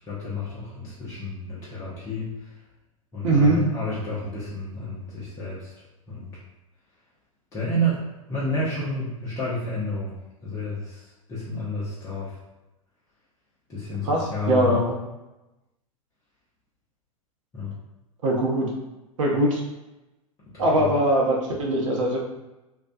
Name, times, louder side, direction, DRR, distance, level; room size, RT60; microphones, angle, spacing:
voice 1, 0.0-2.5 3.1-5.7 6.1-6.3 7.5-8.0 8.3-10.1 10.4-12.4 13.7-14.8 17.5-17.8 20.5-20.9, left 1 dB, 15° left, -9 dB, 0.6 m, -30 dB
voice 2, 3.2-3.6 14.0-14.9 18.2-18.7 19.2-19.6 20.6-22.2, right 1 dB, 60° right, -2 dB, 0.7 m, -21 dB
2.4 x 2.1 x 2.6 m, 1.0 s
figure-of-eight pair, 95°, 18 cm